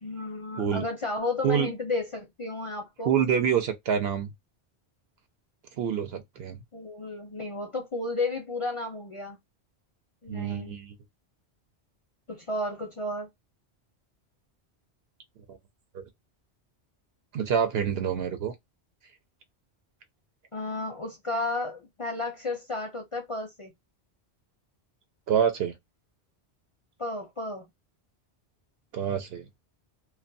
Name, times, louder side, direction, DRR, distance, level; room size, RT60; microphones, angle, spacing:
voice 1, 0.0-3.1 6.7-9.4 10.2-10.8 12.3-13.3 20.5-23.7 27.0-27.7, left 2 dB, 40° left, 0.5 m, -33 dB
voice 2, 3.0-4.3 5.8-6.6 10.3-10.9 15.5-15.6 15.9-16.1 17.3-18.5 25.3-25.7 28.9-29.5, right 8 dB, 70° right, 0.8 m, -26 dB
2.4 x 2.2 x 2.5 m
omnidirectional pair, 1.1 m